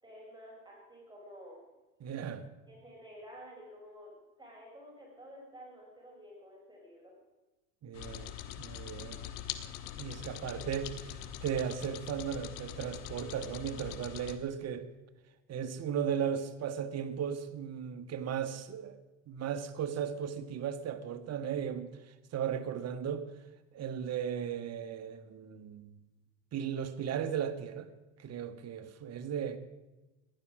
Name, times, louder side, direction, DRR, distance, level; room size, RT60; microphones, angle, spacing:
voice 1, 0.0-1.6 2.7-4.1 4.4-7.1, equal, 10° right, 4.7 m, -51 dB
voice 2, 2.0-2.4 7.8-8.3 8.6-9.2 10.0-14.9 15.5-19.0 19.3-23.2 23.7-26.0 26.5-27.9 28.2-29.6, right 8 dB, 40° right, 1.3 m, -36 dB
sound 1, 7.9-14.4, left 11 dB, 60° left, 1.3 m, -43 dB
15.5 x 11.0 x 6.1 m
hypercardioid pair, 90°, 38 cm